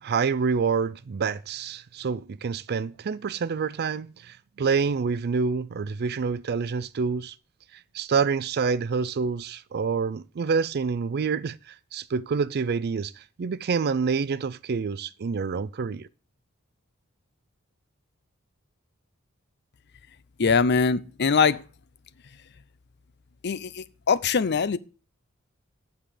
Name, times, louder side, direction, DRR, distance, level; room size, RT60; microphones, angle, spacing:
voice 1, 0.0-7.4 7.9-16.1, right 5 dB, 50° right, 0.4 m, -27 dB
voice 2, 20.4-21.6 23.4-24.8, left 5 dB, 55° left, 0.6 m, -22 dB
8.5 x 5.0 x 7.5 m
head